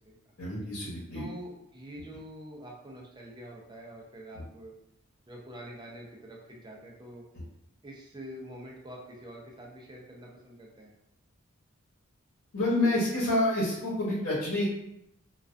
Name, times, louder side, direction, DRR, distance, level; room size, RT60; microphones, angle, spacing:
voice 1, 0.4-1.2 12.5-14.7, left 1 dB, 85° left, -8 dB, 0.9 m, -28 dB
voice 2, 1.1-4.7 5.3-7.2 7.8-10.9, equal, 20° right, -2 dB, 0.5 m, -46 dB
2.3 x 2.2 x 2.5 m, 0.81 s
head